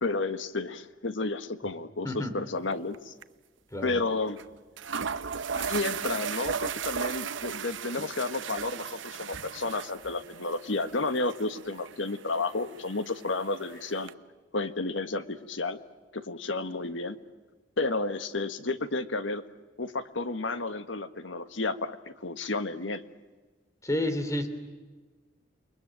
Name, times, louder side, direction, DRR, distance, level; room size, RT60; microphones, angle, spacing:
voice 1, 0.0-3.1 3.8-4.4 5.5-14.1 14.5-15.8 16.1-17.2 17.8-19.4 19.8-23.0, left 3 dB, 90° left, 11 dB, 1.6 m, -31 dB
voice 2, 2.0-2.4 3.7-4.0 23.8-24.5, left 1 dB, 15° left, 9 dB, 3.1 m, -30 dB
sound 1, 2.7-3.0 3.2-3.3 4.4-4.5 4.8-14.1, right 7 dB, 90° right, 0.8 m, -37 dB
29.0 x 22.0 x 9.1 m, 1.3 s
head